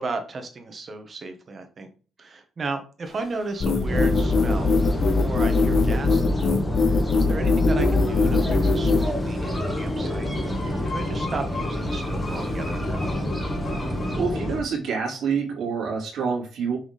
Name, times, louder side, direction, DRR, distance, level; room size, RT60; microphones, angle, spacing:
voice 1, 0.0-1.9 2.2-4.8 5.1-13.3, right 3 dB, 40° right, 6 dB, 1.6 m, -34 dB
sound 1, 3.0-14.2, left 3 dB, 25° left, 3.3 m, -41 dB
sound 2, 3.6-9.1, left 3 dB, 50° left, 1.2 m, -21 dB
sound 3, 3.9-14.6, left 1 dB, 10° left, 2.1 m, -27 dB
voice 2, 14.2-16.8, right 5 dB, 75° right, -1 dB, 2.7 m, -27 dB
6.5 x 4.8 x 3.7 m, 0.36 s
cardioid pair, 90°, 0 cm